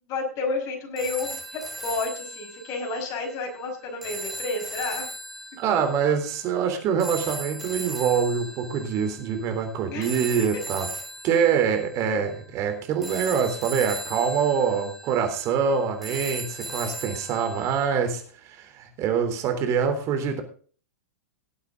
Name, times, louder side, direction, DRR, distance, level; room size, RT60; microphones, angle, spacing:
voice 1, 0.1-5.1 9.8-10.1, left 3 dB, 40° left, 3 dB, 5.4 m, -31 dB
sound 1, 1.0-17.9, right 1 dB, ahead, 3.1 m, -38 dB
voice 2, 5.6-10.9 11.2-20.4, right 7 dB, 35° right, 7 dB, 3.5 m, -25 dB
18.5 x 8.3 x 3.9 m, 0.41 s
hypercardioid pair, 110°, 8 cm